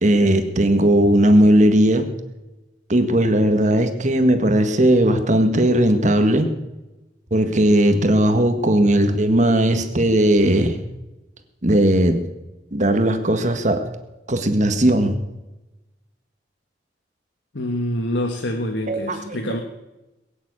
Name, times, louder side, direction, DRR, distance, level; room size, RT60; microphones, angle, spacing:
voice 1, 0.0-2.1 2.9-6.5 7.3-10.8 11.6-12.2 12.7-13.8 14.3-15.2 18.9-19.4, right 1 dB, 45° right, 7 dB, 1.7 m, -17 dB
voice 2, 17.5-19.6, left 1 dB, 90° left, 4 dB, 1.5 m, -26 dB
22.0 x 7.4 x 8.8 m, 1.0 s
head